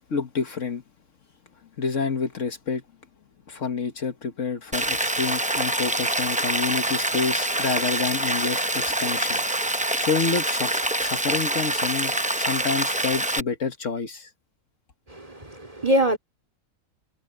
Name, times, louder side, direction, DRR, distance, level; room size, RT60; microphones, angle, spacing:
voice 1, 0.1-0.8 1.8-2.8 3.5-9.4 10.0-14.3, left 5 dB, 60° left, 1.6 m, -28 dB
Rain, 4.7-13.4, right 1 dB, 10° right, 0.5 m, -25 dB
voice 2, 15.1-16.2, equal, 25° right, 3.2 m, -23 dB
omnidirectional pair, 1.5 m